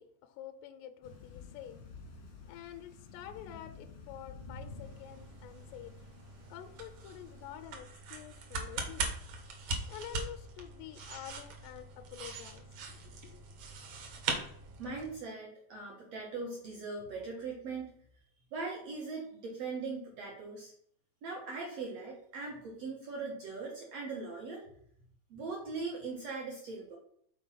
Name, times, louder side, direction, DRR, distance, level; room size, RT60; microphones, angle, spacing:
voice 1, 0.0-1.8 2.5-5.9 6.5-9.1 9.9-12.6 12.9-13.5, left 11 dB, 90° left, 9 dB, 2.7 m, -48 dB
Thunder / Rain, 1.0-7.7, left 4 dB, 70° left, 1.2 m, -51 dB
sound 1, 4.4-15.2, right 3 dB, 65° right, 1.7 m, -41 dB
voice 2, 14.8-17.9 18.5-20.7 21.2-24.6 25.3-27.0, right 4 dB, 80° right, -2 dB, 1.4 m, -40 dB
6.9 x 4.1 x 5.5 m, 0.66 s
omnidirectional pair, 4.8 m